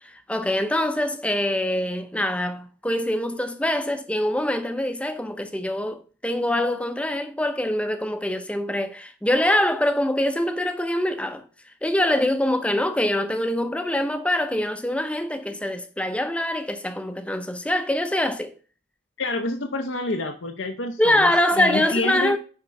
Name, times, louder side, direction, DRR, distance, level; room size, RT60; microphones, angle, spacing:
voice 1, 0.0-18.5 21.0-22.4, left 1 dB, 5° left, 0.6 m, -24 dB
voice 2, 19.2-22.4, left 2 dB, 70° left, 0.7 m, -28 dB
9.5 x 3.7 x 5.2 m
head